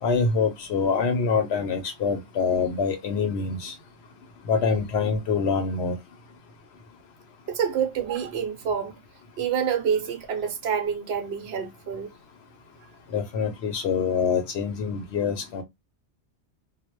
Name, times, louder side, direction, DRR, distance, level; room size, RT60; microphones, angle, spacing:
voice 1, 0.0-3.7 4.5-6.0 13.1-15.6, left 5 dB, 75° left, 0.8 m, -25 dB
voice 2, 7.5-8.9 9.4-12.1, right 7 dB, 70° right, 0.8 m, -27 dB
2.2 x 2.0 x 2.9 m
omnidirectional pair, 1.1 m